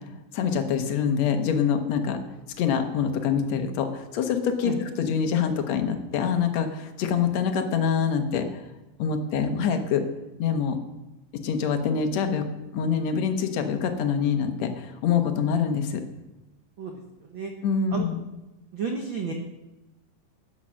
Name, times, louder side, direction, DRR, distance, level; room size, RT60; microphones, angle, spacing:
voice 1, 0.3-2.2 2.6-8.6 9.0-10.0 10.4-10.8 11.3-12.5 12.7-16.0 17.6-18.2, left 7 dB, 65° left, 6 dB, 2.0 m, -25 dB
voice 2, 16.8-17.5 17.9-18.1 18.7-19.3, right 5 dB, 90° right, 2 dB, 1.0 m, -32 dB
13.0 x 8.7 x 6.3 m, 0.99 s
omnidirectional pair, 3.9 m